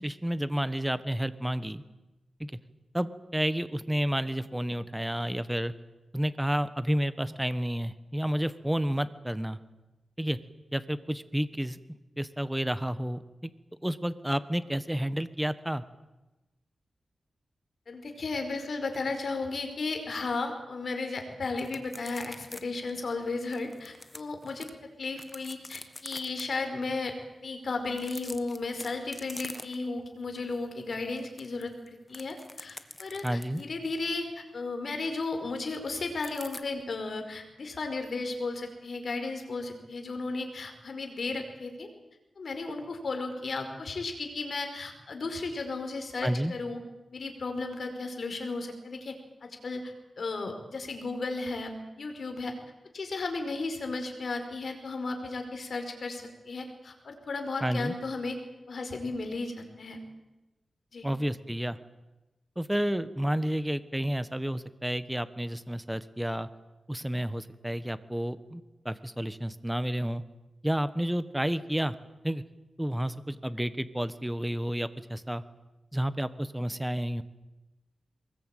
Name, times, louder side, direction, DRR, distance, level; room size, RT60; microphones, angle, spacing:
voice 1, 0.0-1.8 2.4-2.5 2.9-5.7 6.1-9.6 10.2-10.4 10.7-11.8 12.2-13.5 13.8-15.8 33.2-33.6 46.2-46.5 57.6-57.9 61.0-61.8 62.6-66.5 66.9-70.2 70.6-72.0 72.2-72.4 72.8-75.4 75.9-77.2, equal, 5° right, 14 dB, 1.2 m, -30 dB
voice 2, 17.9-24.7 25.0-27.1 27.4-41.9 42.4-46.8 47.1-49.1 49.4-51.7 52.0-52.5 52.9-58.4 58.7-60.0 60.9-61.1, left 3 dB, 60° left, 5 dB, 5.0 m, -34 dB
sound 1, 21.6-22.6 22.9-23.0 23.5-24.7 25.1-26.4 27.9-30.0 30.4-30.6 30.9-33.7 36.2-36.6, left 2 dB, 20° left, 1.8 m, -45 dB
23.5 x 21.0 x 9.2 m, 1.1 s
wide cardioid pair, 100°, 0 cm